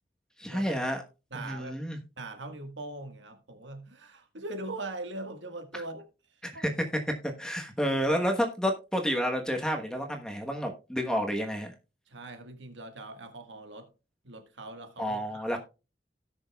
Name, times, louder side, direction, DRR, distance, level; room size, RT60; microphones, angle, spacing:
voice 1, 0.4-1.0 1.3-2.0 6.5-6.7 7.2-11.7 15.0-15.6, equal, 5° left, 1.1 m, -30 dB
voice 2, 1.3-1.8 2.2-6.1 6.5-6.6 12.1-13.9 14.2-15.6, right 2 dB, 85° right, 1.6 m, -41 dB
17.5 x 6.3 x 2.3 m
head